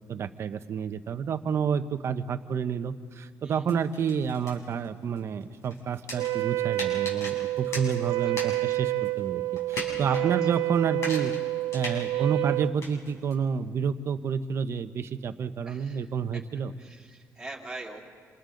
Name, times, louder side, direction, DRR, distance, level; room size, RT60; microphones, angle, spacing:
voice 1, 0.1-9.4 9.7-11.3 11.7-16.7, right 6 dB, 45° right, 10 dB, 0.9 m, -29 dB
sound 1, 3.6-8.7 9.0-10.2 10.5-13.3, left 1 dB, 50° left, 6.7 m, -40 dB
Wind instrument woodwind instrument, 6.1-12.8, right 19 dB, 80° right, 0.6 m, -29 dB
voice 2, 8.2-8.6 10.0-10.3 12.1-12.3 15.7-16.0 16.8-18.0, right 2 dB, 10° right, -2 dB, 2.9 m, -43 dB
28.0 x 27.5 x 3.9 m, 2.1 s
cardioid pair, 155°, 6 cm